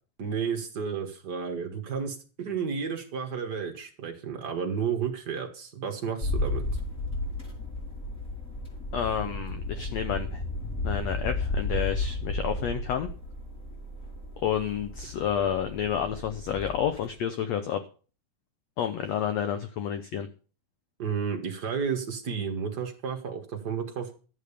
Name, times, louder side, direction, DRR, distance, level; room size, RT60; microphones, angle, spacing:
voice 1, 0.2-6.6 21.0-24.1, right 6 dB, 65° right, 5 dB, 1.0 m, -32 dB
sound 1, 6.2-17.1, left 2 dB, 20° left, 4.6 m, -33 dB
voice 2, 8.9-10.4 10.8-13.1 14.4-17.8 18.8-20.3, left 8 dB, 80° left, 10 dB, 1.5 m, -30 dB
12.5 x 7.7 x 6.8 m, 0.38 s
omnidirectional pair, 4.1 m